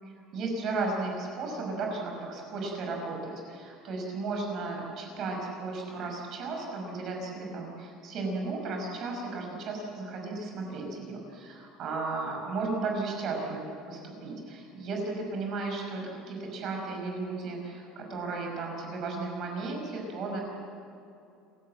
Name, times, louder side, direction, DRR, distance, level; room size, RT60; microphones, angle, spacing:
voice 1, 0.0-13.6 13.9-20.4, right 3 dB, 35° right, 1 dB, 5.6 m, -34 dB
27.5 x 17.0 x 7.9 m, 2.7 s
cardioid pair, 180°, 0 cm